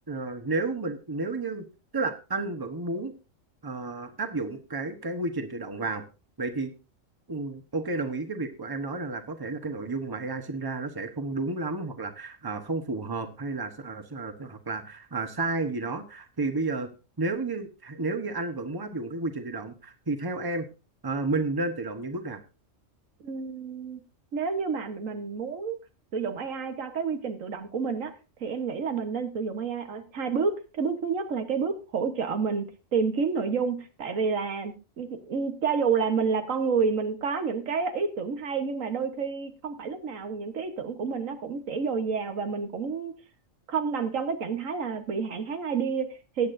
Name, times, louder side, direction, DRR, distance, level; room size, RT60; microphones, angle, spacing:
voice 1, 0.1-1.6 1.9-3.1 3.6-6.0 6.4-6.7 7.3-16.9 17.2-20.7 21.0-22.4, right 3 dB, 20° right, 7 dB, 1.1 m, -31 dB
voice 2, 23.2-24.0 24.3-25.8 26.1-28.1 28.4-43.1 43.7-46.5, right 5 dB, 80° right, 7 dB, 1.6 m, -29 dB
19.0 x 8.5 x 2.6 m, 0.30 s
omnidirectional pair, 1.3 m